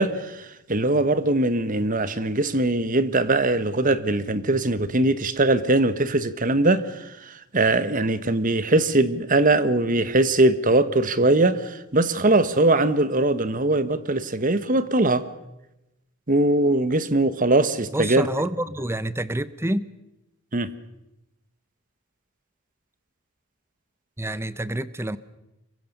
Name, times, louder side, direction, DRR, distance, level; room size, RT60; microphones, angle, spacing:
voice 1, 0.0-15.2 16.3-18.3 20.5-20.7, right 2 dB, 40° right, 1.2 m, -21 dB
voice 2, 17.9-19.9 24.2-25.2, right 1 dB, 10° right, 0.8 m, -28 dB
25.5 x 23.0 x 6.7 m
head